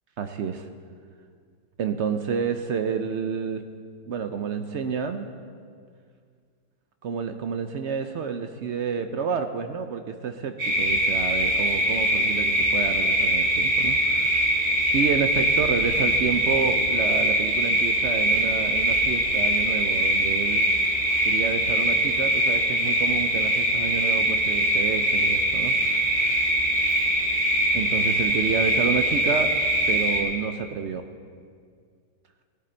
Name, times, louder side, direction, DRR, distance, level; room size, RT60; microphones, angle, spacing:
voice 1, 0.2-0.7 1.8-3.6 4.1-5.3 7.0-14.4 14.9-20.7 21.2-26.5 27.7-29.5 29.9-31.1, right 6 dB, 75° right, 7 dB, 0.6 m, -29 dB
sound 1, 10.6-30.2, right 1 dB, 55° right, 2.6 m, -22 dB
17.5 x 11.5 x 4.4 m, 2.1 s
omnidirectional pair, 1.9 m